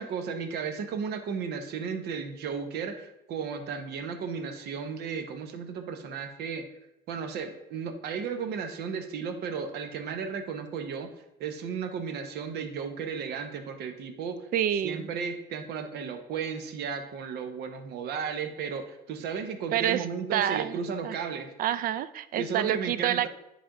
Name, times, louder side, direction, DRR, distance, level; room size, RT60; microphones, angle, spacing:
voice 1, 0.0-6.6 7.1-11.1 11.4-14.5 14.8-21.5 22.4-23.3, right 6 dB, 75° right, 7 dB, 0.9 m, -34 dB
voice 2, 14.5-15.1 19.7-20.1 20.3-20.8 21.0-21.2 21.6-23.3, right 11 dB, 60° right, 15 dB, 0.4 m, -27 dB
10.0 x 3.4 x 3.7 m, 0.87 s
cardioid pair, 110°, 17 cm